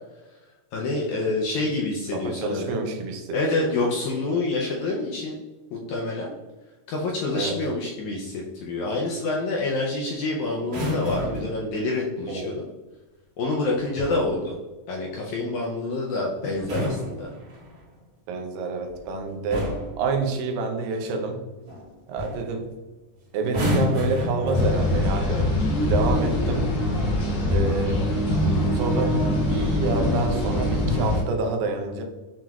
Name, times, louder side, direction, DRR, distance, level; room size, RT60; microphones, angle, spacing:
voice 1, 0.7-2.7 3.3-5.4 5.7-6.3 6.9-12.7 13.4-14.6 14.9-17.3, left 2 dB, 80° left, -2 dB, 1.7 m, -27 dB
voice 2, 2.1-3.7 7.3-7.6 12.3-12.6 18.3-21.4 22.1-22.7 23.3-25.5 25.9-26.7 27.5-28.1 28.7-29.2 29.5-32.0, right 3 dB, 90° right, 4 dB, 2.4 m, -28 dB
sound 1, 10.6-11.6 13.7-14.3 16.5-17.8 18.9-19.1 19.5-20.0 21.7-21.9 22.2-22.5 23.4-25.1 26.0-26.3, left 2 dB, 55° right, 2.3 m, -30 dB
sound 2, 24.5-31.2, left 1 dB, 65° left, 2.1 m, -23 dB
7.5 x 2.9 x 2.3 m, 1.2 s
omnidirectional pair, 3.9 m